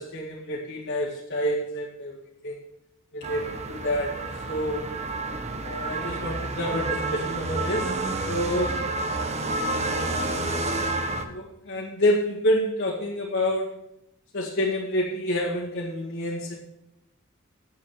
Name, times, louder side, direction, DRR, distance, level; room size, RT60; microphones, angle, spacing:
voice 1, 0.0-2.2 2.4-2.6 3.1-4.2 4.5-4.9 5.6-8.8 9.7-10.9 11.2-13.8 14.3-16.6, left 1 dB, 55° left, -6 dB, 2.1 m, -28 dB
sound 1, 3.2-11.2, right 2 dB, 30° right, 1.1 m, -29 dB
9.8 x 8.1 x 6.7 m, 0.83 s
head